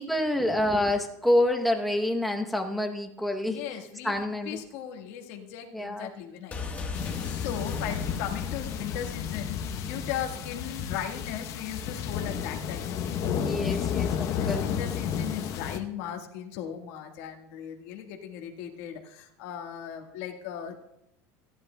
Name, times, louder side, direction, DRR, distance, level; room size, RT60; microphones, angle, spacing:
voice 1, 0.0-3.6 4.0-4.6 5.7-6.1 13.3-14.6, left 1 dB, ahead, 3 dB, 0.8 m, -27 dB
voice 2, 3.5-6.6 7.3-13.2 13.7-20.8, left 9 dB, 65° left, 3 dB, 1.5 m, -38 dB
sound 1, 6.5-10.3 10.5-10.6, left 4 dB, 20° left, 1.3 m, -38 dB
sound 2, 6.9-15.8, left 8 dB, 40° left, 0.8 m, -32 dB
27.0 x 10.5 x 2.2 m, 0.81 s
cardioid pair, 165°, 8 cm